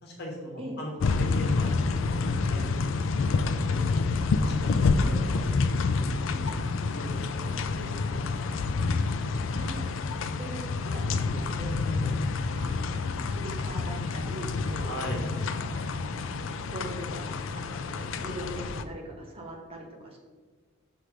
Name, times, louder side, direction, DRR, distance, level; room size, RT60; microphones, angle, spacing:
voice 1, 0.0-2.6 2.9-3.8 4.3-5.8 6.1-9.1 14.9-15.2, equal, 50° left, -1 dB, 1.3 m, -40 dB
sound 1, 1.0-18.8, left 4 dB, 65° left, 0.4 m, -28 dB
voice 2, 9.5-9.9 10.4-12.2 12.6-15.0 15.7-20.2, right 1 dB, 30° right, 0 dB, 0.9 m, -42 dB
6.2 x 5.7 x 3.3 m, 1.4 s
head